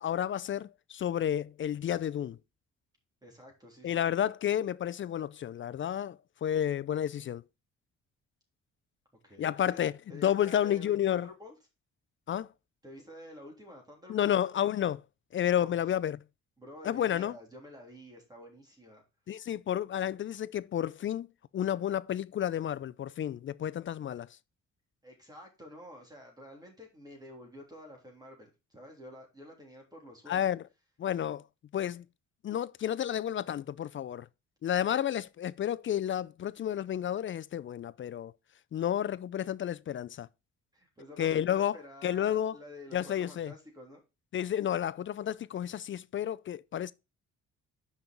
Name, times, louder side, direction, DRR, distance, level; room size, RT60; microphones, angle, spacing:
voice 1, 0.0-2.4 3.8-7.4 9.4-9.9 10.2-11.3 12.3-12.5 14.1-15.0 15.3-16.2 16.8-17.3 19.3-21.3 21.5-24.3 30.3-30.6 31.0-31.4 31.7-32.0 32.4-34.3 34.6-38.3 38.7-40.3 41.2-41.8 42.0-42.6 42.9-43.5 44.3-46.9, left 10 dB, 40° left, 0.4 m, -31 dB
voice 2, 3.2-4.2 9.2-9.8 10.1-11.5 12.8-14.3 15.5-15.8 16.6-19.0 25.0-30.5 40.7-44.0, left 1 dB, 15° right, 3.2 m, -50 dB
5.9 x 5.4 x 4.4 m
cardioid pair, 90°, 30 cm